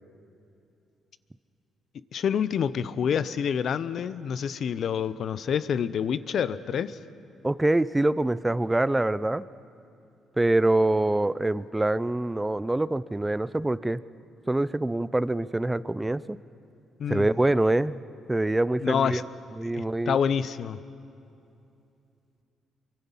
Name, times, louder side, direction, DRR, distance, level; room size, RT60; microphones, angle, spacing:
voice 1, 2.1-7.0 17.0-17.3 18.8-19.2 19.7-20.8, left 7 dB, 60° left, 15 dB, 0.7 m, -27 dB
voice 2, 7.4-9.4 10.4-14.0 14.5-16.4 17.1-18.0 18.3-19.3 19.6-20.2, right 2 dB, 15° right, 17 dB, 0.5 m, -25 dB
25.0 x 24.0 x 5.6 m, 2.7 s
cardioid pair, 90°, 0 cm